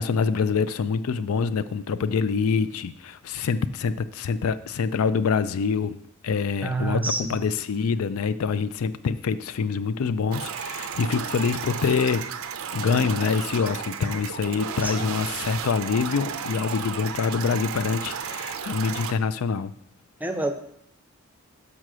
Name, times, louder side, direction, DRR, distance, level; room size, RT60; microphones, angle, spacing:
voice 1, 0.0-6.0 6.2-12.3 12.7-19.7, left 5 dB, 80° left, 13 dB, 0.4 m, -25 dB
voice 2, 6.6-7.4 14.8-14.9 20.2-20.5, right 3 dB, 10° right, 7 dB, 0.5 m, -27 dB
sound 1, 10.3-19.1, right 7 dB, 70° right, 0.5 m, -33 dB
6.3 x 5.6 x 6.1 m, 0.71 s
head